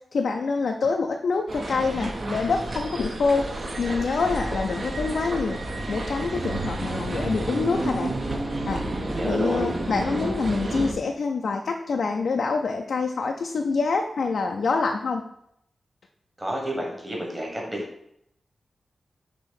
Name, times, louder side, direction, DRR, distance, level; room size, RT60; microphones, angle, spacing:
voice 1, 0.1-3.5 3.8-5.6 5.9-8.1 8.7-8.8 9.2-15.2, left 4 dB, 75° left, 2 dB, 0.5 m, -26 dB
sound 1, 1.5-10.9, right 2 dB, 45° right, 1.1 m, -30 dB
voice 2, 9.0-9.7 16.4-17.9, equal, 15° right, -1 dB, 1.4 m, -30 dB
7.1 x 3.0 x 5.7 m, 0.74 s
wide cardioid pair, 130°, 0 cm